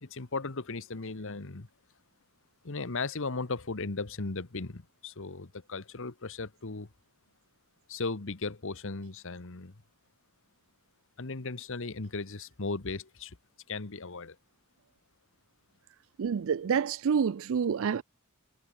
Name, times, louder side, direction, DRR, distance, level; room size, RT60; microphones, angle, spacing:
voice 1, 0.0-1.7 2.6-6.9 7.9-9.7 11.2-13.4 13.7-14.4, left 3 dB, 65° left, 1.3 m, -36 dB
voice 2, 16.2-18.0, right 6 dB, 65° right, 0.4 m, -28 dB
head